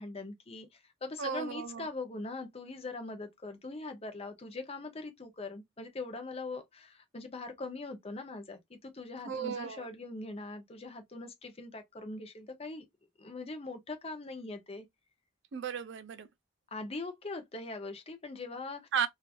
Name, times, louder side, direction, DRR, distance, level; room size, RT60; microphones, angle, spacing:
voice 1, 0.0-12.8 13.2-14.9 16.7-18.9, left 3 dB, 30° left, 0.6 m, -42 dB
voice 2, 1.2-1.9 9.3-9.9 15.5-16.3 18.9-19.1, right 7 dB, 60° right, 0.4 m, -34 dB
3.0 x 2.4 x 2.3 m
head